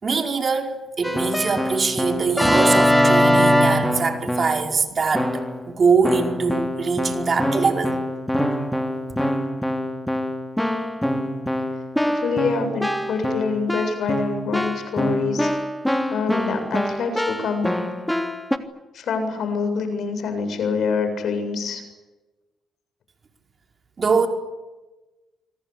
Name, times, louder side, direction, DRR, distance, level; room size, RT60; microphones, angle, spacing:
voice 1, 0.0-7.9 24.0-24.3, right 5 dB, 40° right, 5.2 m, -23 dB
Keyboard (musical), 1.0-4.7 5.1-5.6 6.0-18.6, equal, 5° left, 3.2 m, -23 dB
voice 2, 12.0-15.5 16.1-17.8 18.9-21.8, left 5 dB, 65° left, 7.6 m, -25 dB
26.0 x 25.0 x 8.7 m
cardioid pair, 90°, 0 cm